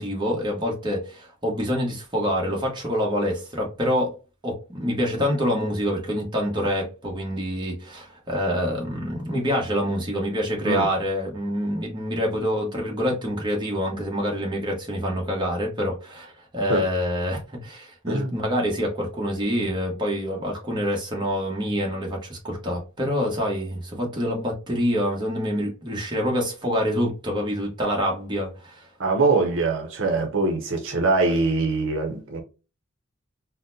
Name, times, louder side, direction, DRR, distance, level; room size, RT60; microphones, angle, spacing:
voice 1, 0.0-4.1 4.4-28.8, equal, 25° right, 1.1 m, -26 dB
voice 2, 29.0-32.4, right 3 dB, 70° right, 0.7 m, -23 dB
3.9 x 2.1 x 2.6 m
head